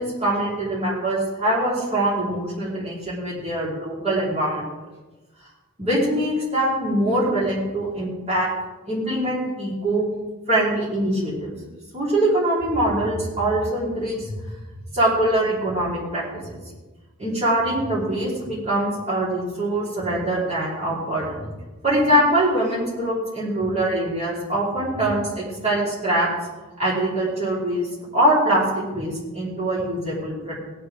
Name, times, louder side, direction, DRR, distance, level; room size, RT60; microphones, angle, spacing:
voice 1, 0.0-4.7 5.8-8.5 8.9-10.0 10.5-11.5 11.9-14.3 14.9-16.2 16.5-16.6 17.2-21.4 21.8-26.3 26.8-27.9 28.1-30.6, right 1 dB, 30° right, -7 dB, 4.6 m, -23 dB
17.5 x 10.5 x 3.9 m, 1.2 s
head